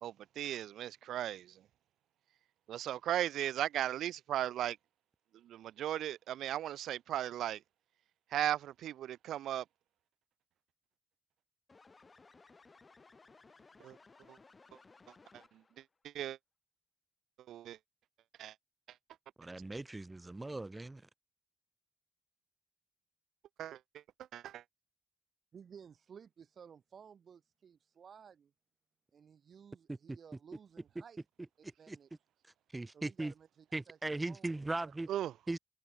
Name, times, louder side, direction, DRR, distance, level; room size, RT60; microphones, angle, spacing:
voice 1, 0.0-1.6 2.7-4.8 5.4-7.6 8.3-9.6 13.8-14.0 14.3-14.4 15.3-15.4 16.0-16.4 17.5-17.8 18.4-18.5 23.6-23.8 24.3-24.6 35.1-35.3, right 12 dB, 85° right, 0.5 m, -36 dB
sound 1, 11.7-15.8, left 4 dB, 35° left, 5.4 m, -60 dB
voice 2, 19.4-21.0 29.9-30.2 31.9-32.0 32.7-33.3 33.7-35.1 35.5-35.6, right 2 dB, 20° right, 2.1 m, -38 dB
voice 3, 25.5-28.5 29.1-31.2 31.8-32.1 32.9-34.0 34.2-35.2, right 7 dB, 60° right, 4.1 m, -56 dB
cardioid pair, 65°, 0 cm